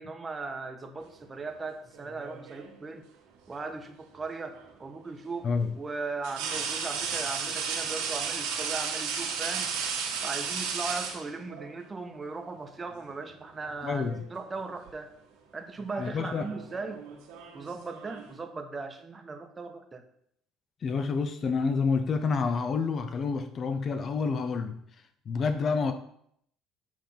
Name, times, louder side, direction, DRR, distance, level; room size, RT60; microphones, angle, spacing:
voice 1, 0.0-3.0 3.5-5.5 5.8-9.7 10.2-15.1 15.5-17.0 17.5-20.0, right 3 dB, 25° right, 6 dB, 1.1 m, -38 dB
sound 1, 1.9-2.8 4.5-4.7 6.2-11.7 12.9-13.1 13.5-14.3 14.5-14.9 15.8-18.4, right 6 dB, 85° right, 1.7 m, -34 dB
voice 2, 13.8-14.2 16.0-16.4 20.8-24.8 25.3-25.9, left 5 dB, 45° left, 8 dB, 0.9 m, -28 dB
7.7 x 3.6 x 5.9 m, 0.69 s
supercardioid pair, 90°, 0 cm